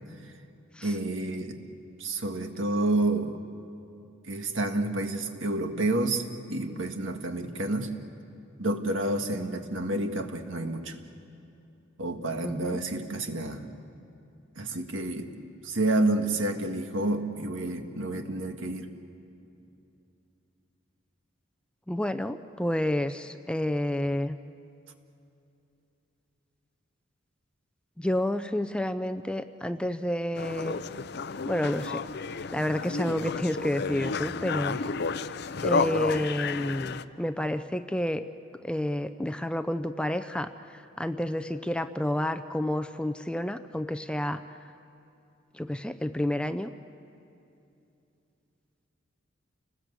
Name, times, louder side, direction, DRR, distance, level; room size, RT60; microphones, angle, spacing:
voice 1, 0.8-1.6 2.0-3.4 4.2-7.9 8.6-11.0 12.0-13.7 14.5-15.3 15.6-18.9, right 2 dB, 75° right, 5 dB, 1.7 m, -29 dB
voice 2, 12.4-12.8 21.9-24.4 28.0-30.8 31.4-32.0 32.5-34.8 35.6-38.2 38.6-44.4 45.5-46.7, left 1 dB, 5° left, 10 dB, 0.5 m, -30 dB
sound 1, 30.3-37.0, left 4 dB, 55° left, 0.6 m, -31 dB
29.0 x 20.0 x 8.2 m, 2.7 s
head